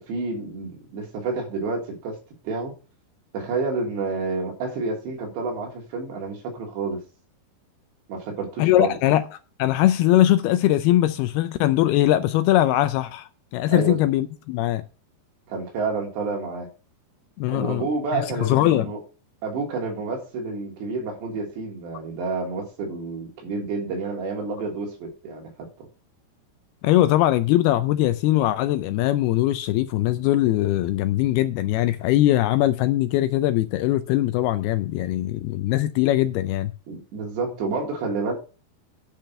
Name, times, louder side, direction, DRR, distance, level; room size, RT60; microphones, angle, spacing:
voice 1, 0.0-2.2 2.5-2.7 3.3-7.0 8.1-9.0 13.7-14.0 15.5-16.7 17.5-19.0 19.4-25.9 36.9-38.3, right 3 dB, 80° right, 5.4 m, -29 dB
voice 2, 8.6-9.2 9.6-14.8 17.4-17.8 18.1-18.9 26.8-36.7, left 14 dB, 80° left, 2.4 m, -21 dB
10.5 x 6.1 x 5.3 m
omnidirectional pair, 5.0 m